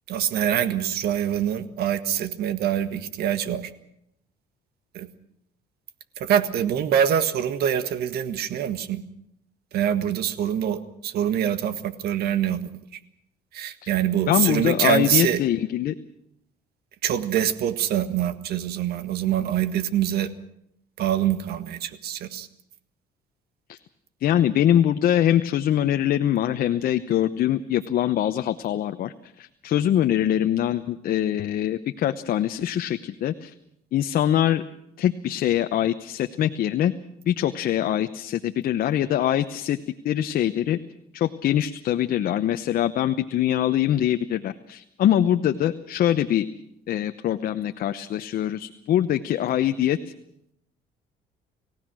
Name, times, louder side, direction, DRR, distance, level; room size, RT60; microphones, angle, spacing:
voice 1, 0.1-3.7 4.9-5.1 6.2-9.0 9.7-12.7 13.5-15.4 17.0-20.3 21.0-22.5, right 10 dB, 70° right, 11 dB, 1.7 m, -24 dB
voice 2, 14.3-15.9 23.7-23.8 24.2-33.5 33.9-34.6 35.0-36.9 37.3-39.8 40.0-40.8 41.1-46.5 46.9-50.0, left 11 dB, 60° left, 8 dB, 0.9 m, -23 dB
29.0 x 16.0 x 6.3 m, 0.76 s
cardioid pair, 110°, 17 cm